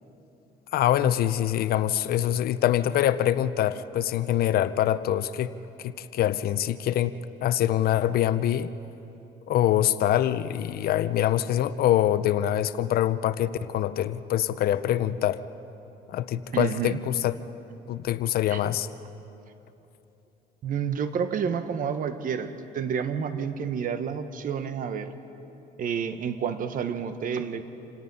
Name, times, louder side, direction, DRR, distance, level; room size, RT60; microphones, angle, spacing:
voice 1, 0.7-5.5 5.8-7.1 7.4-8.7 9.5-15.4 16.1-17.3 17.9-18.9, left 12 dB, 65° left, 14 dB, 0.7 m, -24 dB
voice 2, 16.5-17.0 18.5-18.6 20.6-25.1 25.8-27.6, right 7 dB, 55° right, 10 dB, 1.4 m, -29 dB
27.5 x 18.0 x 5.6 m, 3.0 s
cardioid pair, 110°, 17 cm